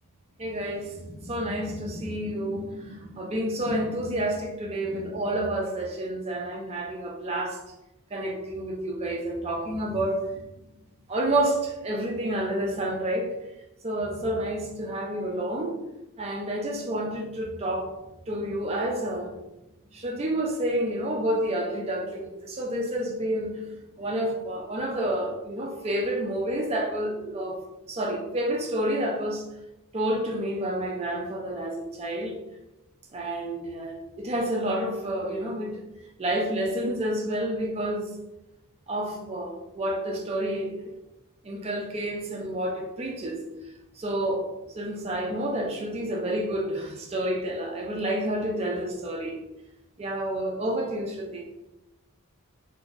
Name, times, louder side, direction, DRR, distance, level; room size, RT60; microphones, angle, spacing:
voice 1, 0.4-7.6 8.1-10.4 11.1-13.3 13.8-15.8 16.2-18.0 18.3-19.3 19.9-23.6 24.0-27.6 27.9-29.5 29.9-32.4 33.1-35.8 36.2-38.1 38.9-40.8 41.4-43.4 44.0-44.5 44.7-49.4 50.0-51.4, right 1 dB, 25° right, 1 dB, 0.4 m, -29 dB
3.0 x 2.6 x 2.4 m, 0.97 s
head